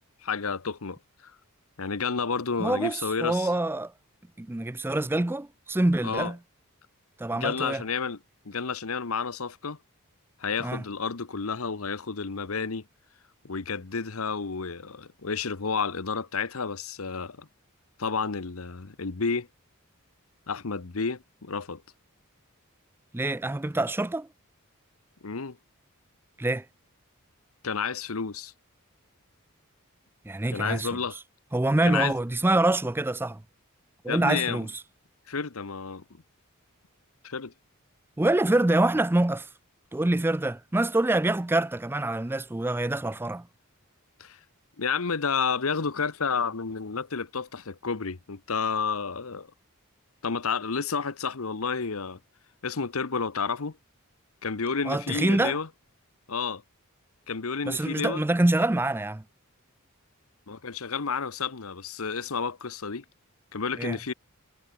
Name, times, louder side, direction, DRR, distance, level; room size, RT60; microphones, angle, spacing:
voice 1, 0.2-1.3 1.8-3.5 6.0-6.3 7.3-8.2 8.4-9.8 10.4-12.8 13.4-17.5 18.0-19.5 20.5-21.8 25.2-25.6 27.6-28.5 30.5-31.2 31.8-32.1 34.1-34.7 35.3-36.0 37.2-37.5 44.2-44.4 44.8-49.5 50.2-52.2 52.6-53.8 54.4-55.7 56.3-56.6 57.3-58.2 60.5-63.0 63.5-64.1, left 5 dB, 75° left, 1.0 m, -30 dB
voice 2, 2.6-3.9 4.4-6.4 7.2-7.8 10.6-10.8 23.1-24.3 26.4-26.7 30.3-30.9 31.5-33.4 34.0-34.7 38.2-39.5 39.9-43.5 54.9-55.6 57.7-59.2 63.8-64.0, right 2 dB, 10° right, 0.4 m, -25 dB
head